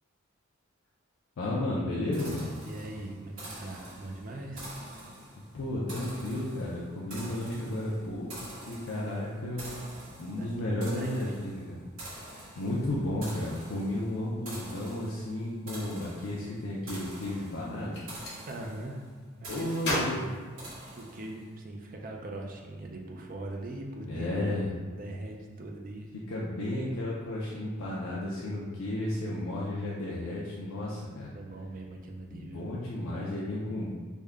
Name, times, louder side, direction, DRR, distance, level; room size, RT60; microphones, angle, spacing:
voice 1, 1.4-2.5 5.5-9.7 10.2-11.8 12.2-18.0 19.4-20.2 24.1-24.7 26.3-31.3 32.3-33.9, left 1 dB, 75° left, -5 dB, 0.5 m, -33 dB
sound 1, 2.1-21.5, right 1 dB, 85° right, 1.4 m, -47 dB
voice 2, 2.6-4.7 10.3-11.2 18.5-19.0 19.4-20.4 20.9-24.6 25.0-26.1 31.3-32.7, right 2 dB, 40° right, 1 dB, 0.4 m, -41 dB
Gunshot gunfire, 17.9-18.4 19.8-21.3, left 1 dB, 55° left, 1.0 m, -34 dB
3.5 x 2.1 x 3.4 m, 1.5 s
head